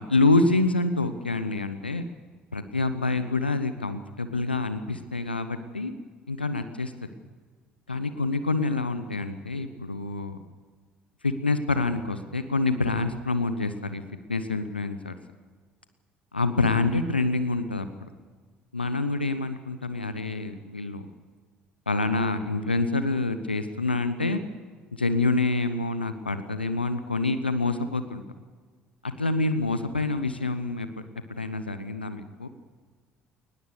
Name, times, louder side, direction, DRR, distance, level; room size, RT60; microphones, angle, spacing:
voice 1, 0.0-2.0 2.5-5.9 6.3-6.9 7.9-10.4 11.2-14.0 14.3-15.1 16.3-18.1 18.7-21.1 21.9-24.4 24.9-28.2 29.0-30.9 31.3-32.5, left 3 dB, 90° left, 11 dB, 0.9 m, -27 dB
21.5 x 20.0 x 6.7 m, 1.5 s
figure-of-eight pair, 55°, 5 cm